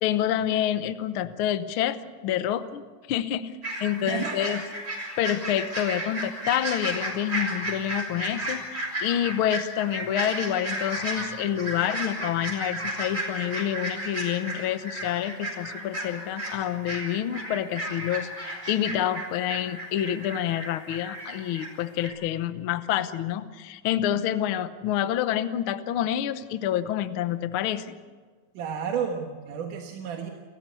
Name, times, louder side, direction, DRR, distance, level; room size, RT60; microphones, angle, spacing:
voice 1, 0.0-4.6 5.2-28.0, left 11 dB, 75° left, 11 dB, 1.2 m, -28 dB
sound 1, 3.6-21.7 22.0-22.1, right 1 dB, 20° right, 6.5 m, -33 dB
voice 2, 4.0-4.6 28.5-30.3, right 7 dB, 80° right, 2 dB, 3.0 m, -32 dB
30.0 x 14.5 x 8.4 m, 1.5 s
omnidirectional pair, 3.6 m